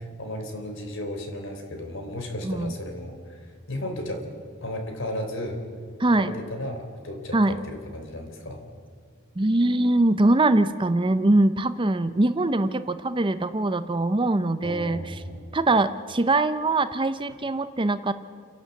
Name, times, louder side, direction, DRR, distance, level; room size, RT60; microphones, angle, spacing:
voice 1, 0.0-4.3 4.6-5.6 6.2-8.6 14.6-15.4, left 1 dB, 65° left, 4 dB, 3.8 m, -34 dB
voice 2, 6.0-6.3 7.3-7.5 9.4-15.2 15.5-18.1, right 2 dB, 25° right, 12 dB, 0.6 m, -22 dB
29.5 x 11.5 x 8.2 m, 2.1 s
head